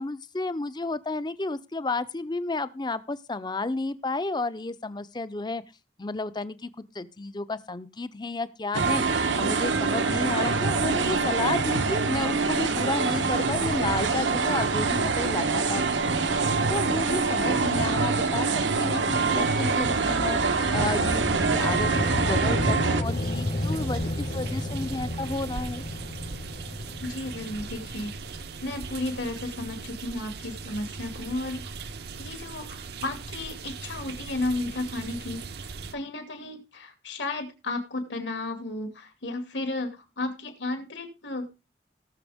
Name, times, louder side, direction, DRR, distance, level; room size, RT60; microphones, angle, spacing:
voice 1, 0.0-5.6 6.0-6.7 6.9-18.5 18.7-25.8, left 2 dB, 25° left, 14 dB, 0.6 m, -32 dB
sound 1, 8.7-23.0, right 4 dB, 85° right, 1.1 m, -25 dB
sound 2, 19.1-29.3, left 1 dB, 50° left, 1.2 m, -32 dB
sound 3, 23.0-35.9, right 4 dB, 60° right, 0.7 m, -39 dB
voice 2, 27.0-31.7 32.2-41.5, left 2 dB, 80° left, 5 dB, 2.5 m, -33 dB
18.0 x 6.9 x 3.5 m, 0.28 s
head